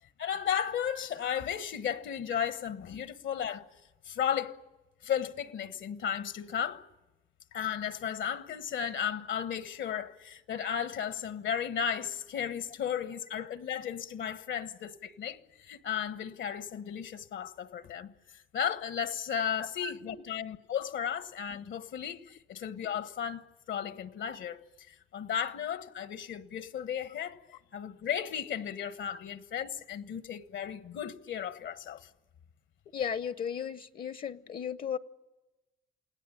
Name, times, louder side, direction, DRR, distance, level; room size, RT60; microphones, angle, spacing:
voice 1, 0.2-3.6 4.0-4.6 5.0-6.8 7.5-24.6 24.9-27.4 27.7-32.1, left 8 dB, 70° left, 1.3 m, -34 dB
voice 2, 19.8-20.2 32.9-35.0, left 7 dB, 45° left, 0.8 m, -35 dB
28.5 x 18.0 x 8.7 m
cardioid pair, 90°, 20 cm